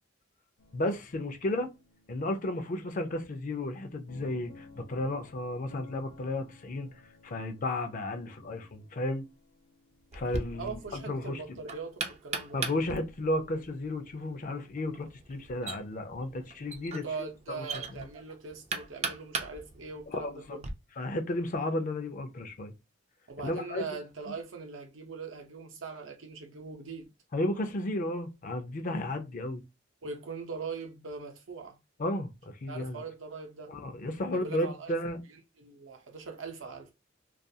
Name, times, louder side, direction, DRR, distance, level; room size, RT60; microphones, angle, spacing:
sound 1, 0.6-11.3, left 4 dB, 70° left, 0.8 m, -56 dB
voice 1, 0.7-1.7 2.1-6.9 7.2-9.3 10.1-11.4 12.5-17.0 17.5-17.6 18.0-18.1 20.1-20.6 21.0-22.7 23.4-23.8 27.3-29.6 32.0-33.0 33.7-35.2, left 1 dB, 45° left, 0.5 m, -33 dB
Knock, 10.1-20.7, right 4 dB, 35° right, 0.4 m, -40 dB
voice 2, 10.6-12.6 16.9-20.7 23.3-27.1 30.0-31.8 32.7-33.7 34.3-34.9 35.6-36.9, right 4 dB, 75° right, 0.6 m, -41 dB
2.4 x 2.3 x 2.7 m
head